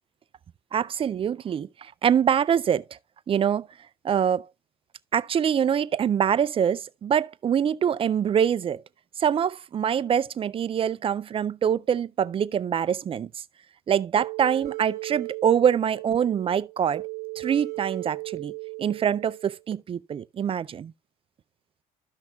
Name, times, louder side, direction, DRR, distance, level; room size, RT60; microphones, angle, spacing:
voice 1, 0.7-2.8 3.3-3.7 4.0-4.5 5.1-8.8 9.2-13.3 13.9-17.0 17.4-18.5 18.8-20.9, right 8 dB, 35° right, 0.4 m, -24 dB
sound 1, 14.2-19.7, right 25 dB, 65° right, 1.0 m, -36 dB
14.0 x 5.8 x 2.3 m
cardioid pair, 110°, 17 cm